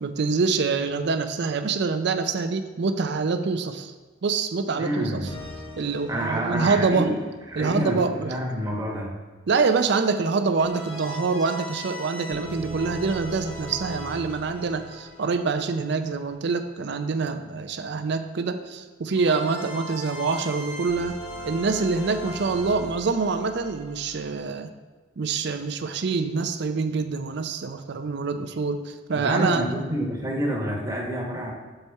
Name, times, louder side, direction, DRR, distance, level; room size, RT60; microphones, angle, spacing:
voice 1, 0.0-3.9 4.2-5.3 5.8-7.1 7.6-8.4 9.5-21.2 21.4-24.7 25.2-29.7, right 4 dB, 60° right, 8 dB, 0.5 m, -25 dB
voice 2, 4.8-5.4 6.1-7.2 7.5-9.1 29.1-31.5, right 1 dB, 20° right, -2 dB, 1.1 m, -28 dB
sound 1, 5.2-8.0 10.6-16.3 19.2-24.2, equal, 30° left, 1.0 m, -39 dB
6.6 x 4.3 x 4.6 m, 1.4 s
head